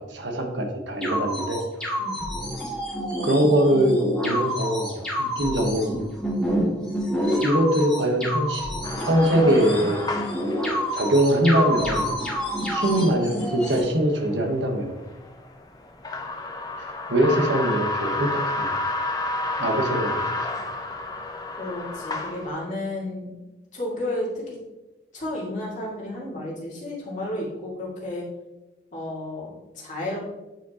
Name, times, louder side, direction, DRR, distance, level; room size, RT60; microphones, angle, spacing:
voice 1, 0.0-1.6 3.2-3.9 4.2-5.9 7.4-8.7 9.0-10.0 10.9-12.1 12.7-15.0 17.1-18.8 19.6-20.2, right 1 dB, 80° right, 3 dB, 1.1 m, -22 dB
sound 1, 1.0-13.8, equal, 5° left, 1.9 m, -28 dB
sound 2, 8.8-22.5, left 2 dB, 20° left, 0.6 m, -31 dB
voice 2, 21.6-23.4 23.7-24.6 25.1-28.3 28.9-30.2, left 1 dB, 40° left, -5 dB, 2.2 m, -32 dB
9.1 x 4.7 x 2.9 m, 1.1 s
head